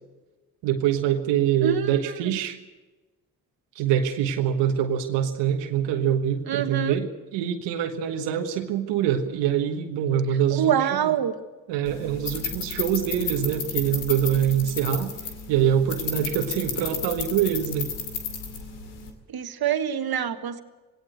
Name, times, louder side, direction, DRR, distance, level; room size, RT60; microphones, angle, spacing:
voice 1, 0.6-2.6 3.7-10.7 11.7-15.1 15.5-17.9, right 9 dB, 85° right, 5 dB, 1.4 m, -24 dB
voice 2, 1.6-2.3 6.5-7.0 10.5-11.3 19.3-20.6, right 9 dB, 60° right, 8 dB, 1.6 m, -25 dB
sound 1, 11.8-19.1, left 6 dB, 85° left, 2.5 m, -33 dB
19.0 x 17.5 x 8.0 m, 1.2 s
hypercardioid pair, 40°, 42 cm